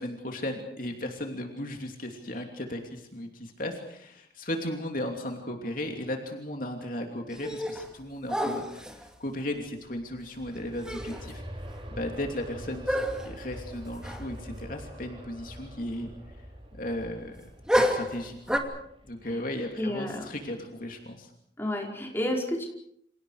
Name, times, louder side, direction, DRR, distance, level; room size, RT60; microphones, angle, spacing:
voice 1, 0.0-11.4 11.9-16.1 16.7-17.4 17.7-18.6 19.1-21.3, left 1 dB, 50° left, 3 dB, 2.9 m, -36 dB
sound 1, 7.3-7.9 8.3-9.1 10.5-10.6 10.8-11.3 11.7-11.8 12.9-13.4 14.0-14.3 14.5-14.6 17.7-18.6, equal, 5° right, 2.6 m, -29 dB
Aircraft, 9.6-20.5 20.9-21.0, equal, 30° right, 4.3 m, -45 dB
voice 2, 19.8-20.3 21.6-22.7, left 1 dB, 15° left, 0 dB, 5.0 m, -30 dB
29.5 x 27.5 x 5.0 m, 0.69 s
head